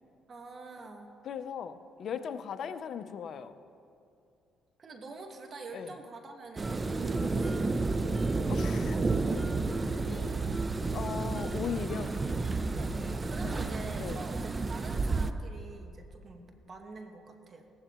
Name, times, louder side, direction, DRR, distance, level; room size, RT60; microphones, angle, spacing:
voice 1, 0.3-1.1 4.8-7.6 8.7-10.5 12.7-17.7, right 3 dB, 45° right, 4 dB, 1.6 m, -47 dB
voice 2, 1.2-3.6 5.7-5.9 8.5-9.0 10.9-12.2 13.4-13.6 14.0-14.2, left 7 dB, 60° left, 10 dB, 0.7 m, -38 dB
Guitar, 6.6-14.3, right 1 dB, 10° right, 2.8 m, -44 dB
sound 1, 6.6-15.3, right 3 dB, 30° right, 0.6 m, -31 dB
17.5 x 14.5 x 3.1 m, 2.6 s
supercardioid pair, 75°, 0 cm